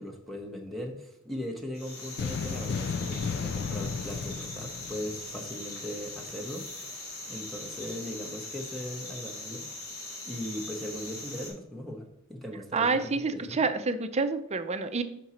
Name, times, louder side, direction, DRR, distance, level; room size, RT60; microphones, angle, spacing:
voice 1, 0.0-6.7 7.3-9.7 10.3-13.6, left 1 dB, ahead, 0 dB, 0.8 m, -39 dB
sound 1, 1.7-11.5, left 2 dB, 75° left, 2.4 m, -41 dB
sound 2, 2.2-5.6, left 5 dB, 55° left, 0.3 m, -34 dB
voice 2, 12.7-15.0, right 4 dB, 30° right, 9 dB, 0.5 m, -28 dB
5.9 x 5.2 x 4.2 m, 0.77 s
head